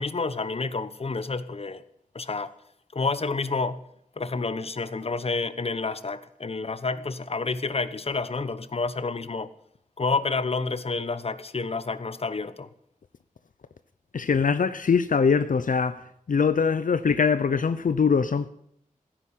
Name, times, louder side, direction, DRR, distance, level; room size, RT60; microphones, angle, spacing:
voice 1, 0.0-1.8 2.1-2.5 2.9-3.8 4.2-9.5 10.0-12.7, left 4 dB, 45° left, 1.0 m, -29 dB
voice 2, 14.1-18.5, left 5 dB, 70° left, 0.7 m, -23 dB
15.5 x 10.0 x 8.5 m
wide cardioid pair, 85°, 14 cm